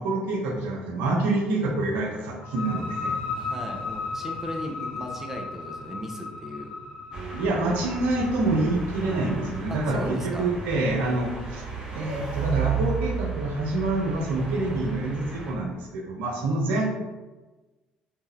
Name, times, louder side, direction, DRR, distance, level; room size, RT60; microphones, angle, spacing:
voice 1, 0.0-3.1 7.3-11.6 11.9-16.9, right 2 dB, 65° right, 0 dB, 0.5 m, -26 dB
sound 1, 2.4-9.9, left 4 dB, 50° left, 0.7 m, -36 dB
voice 2, 3.4-6.7 9.7-10.5, equal, 10° right, 1 dB, 0.6 m, -36 dB
sound 2, 7.1-15.5, right 6 dB, 30° right, 0.9 m, -34 dB
2.6 x 2.2 x 3.6 m, 1.2 s
figure-of-eight pair, 55°, 3 cm